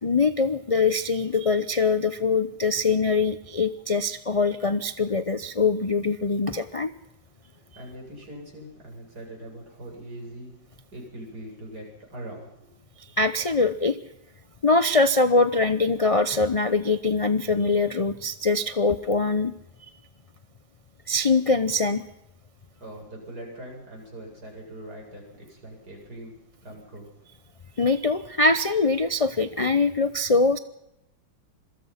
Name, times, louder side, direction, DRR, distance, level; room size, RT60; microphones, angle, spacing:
voice 1, 0.0-6.9 13.2-14.0 14.6-19.5 21.1-22.0 27.8-30.6, left 3 dB, 45° left, 11 dB, 0.4 m, -23 dB
voice 2, 7.5-10.5 10.9-12.7 22.8-27.1, right 1 dB, 55° right, -1 dB, 8.6 m, -42 dB
26.5 x 22.5 x 5.9 m, 0.83 s
omnidirectional pair, 2.0 m